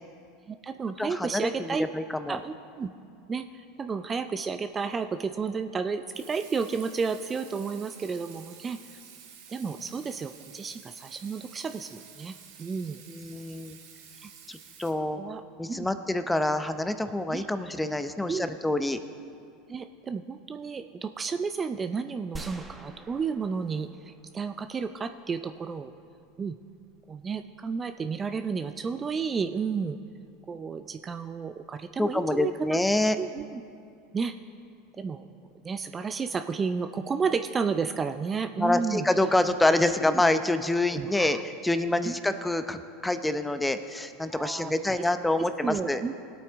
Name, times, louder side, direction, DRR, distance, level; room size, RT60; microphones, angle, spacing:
voice 1, 0.5-1.9 2.3-2.9 3.3-8.8 9.5-12.3 12.6-13.0 14.2-14.3 15.2-15.4 15.7-15.9 17.3-17.5 18.3-18.6 19.7-25.9 26.4-26.6 27.1-30.0 30.5-32.8 33.2-33.6 34.1-34.3 35.0-35.3 35.6-39.1 40.1-40.2 40.9-41.4 42.0-42.1 44.3-45.0 45.4-46.1, right 5 dB, 25° right, 8 dB, 0.5 m, -32 dB
voice 2, 1.0-2.4 13.1-13.8 14.5-15.2 15.6-19.0 32.0-33.2 38.6-46.0, left 1 dB, 10° left, 10 dB, 0.7 m, -27 dB
Water tap faucet / Sink (filling or washing), 6.1-14.9, right 7 dB, 70° right, 1.8 m, -50 dB
sound 1, 22.4-24.7, right 2 dB, 10° right, 1.2 m, -45 dB
19.5 x 8.5 x 3.6 m, 2.4 s
hypercardioid pair, 90°, 0 cm